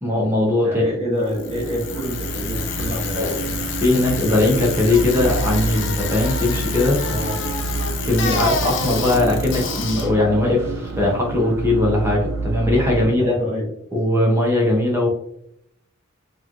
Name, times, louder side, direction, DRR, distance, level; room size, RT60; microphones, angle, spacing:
voice 1, 0.0-0.8 3.2-3.4 3.8-7.0 8.0-13.3 13.9-15.1, left 2 dB, 10° right, -1 dB, 0.7 m, -19 dB
voice 2, 0.6-3.4 7.1-7.4 12.9-13.7, equal, 30° right, -5 dB, 1.1 m, -27 dB
sound 1, 1.1-13.1, right 3 dB, 85° right, 0.3 m, -28 dB
Bicycle, 1.3-11.3, left 4 dB, 60° left, 0.4 m, -29 dB
3.0 x 2.5 x 2.4 m, 0.74 s
head